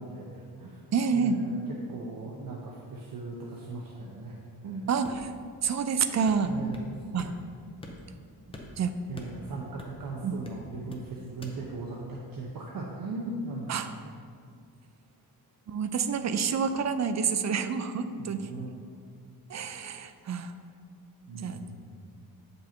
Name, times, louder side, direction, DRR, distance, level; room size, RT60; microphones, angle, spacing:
voice 1, 0.0-0.8 1.1-1.6 1.9-4.9 6.4-7.0 9.1-13.9 18.1-18.7 21.3-21.8, right 3 dB, 65° right, -3 dB, 0.9 m, -39 dB
voice 2, 0.9-1.4 4.9-5.3 5.6-6.6 7.1-7.3 8.8-8.9 10.2-10.4 13.7-13.9 15.7-18.5 19.5-20.5 21.4-21.7, right 6 dB, 50° right, 10 dB, 0.4 m, -28 dB
sound 1, 5.0-5.4 6.3-6.9 7.2-7.3 7.8-8.2 8.5-10.1 10.4-11.1 11.4-11.6, left 1 dB, 15° left, 0.7 m, -45 dB
8.1 x 5.4 x 4.4 m, 2.2 s
wide cardioid pair, 165°, 37 cm